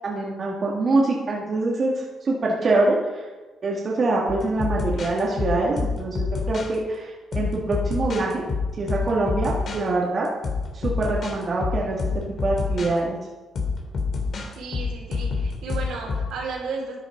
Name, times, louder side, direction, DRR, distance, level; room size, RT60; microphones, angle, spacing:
voice 1, 0.0-3.3 3.6-8.4 8.8-10.3 10.7-12.1 12.4-13.2, right 2 dB, 45° right, -4 dB, 2.3 m, -24 dB
sound 1, 4.3-6.8 7.3-9.8 10.3-12.9 13.6-16.3, left 4 dB, 55° left, 2.9 m, -27 dB
voice 2, 14.6-17.0, right 4 dB, 80° right, -3 dB, 5.1 m, -33 dB
12.5 x 10.0 x 5.3 m, 1.3 s
cardioid pair, 90°, 0 cm